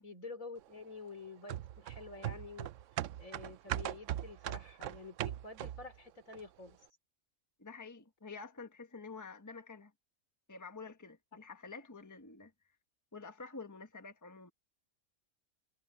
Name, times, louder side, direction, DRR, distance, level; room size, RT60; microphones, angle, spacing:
voice 1, 0.0-6.8, left 3 dB, 75° left, 4.2 m, -49 dB
sound 1, 1.5-6.0 6.3-6.4, right 13 dB, 70° right, 0.9 m, -39 dB
voice 2, 7.6-9.9 10.5-12.5 13.1-14.5, left 4 dB, 15° left, 1.3 m, -48 dB
omnidirectional pair, 1.4 m